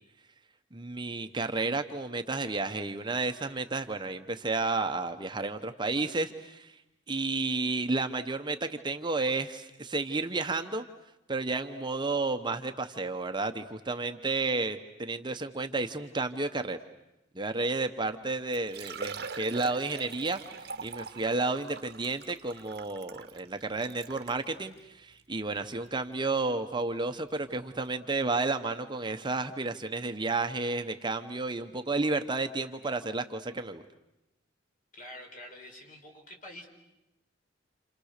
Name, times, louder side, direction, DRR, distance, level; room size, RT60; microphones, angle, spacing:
voice 1, 0.7-6.8 7.1-10.8 11.3-16.8 17.3-33.8, right 3 dB, 25° right, 7 dB, 0.9 m, -32 dB
Liquid, 18.1-18.2 18.5-24.4 25.1-25.2 25.7-25.8 27.4-27.5 27.7-27.8, right 5 dB, 55° right, 1.0 m, -43 dB
voice 2, 34.9-36.7, left 1 dB, 45° left, 2 dB, 4.9 m, -47 dB
29.5 x 28.0 x 6.6 m, 0.92 s
head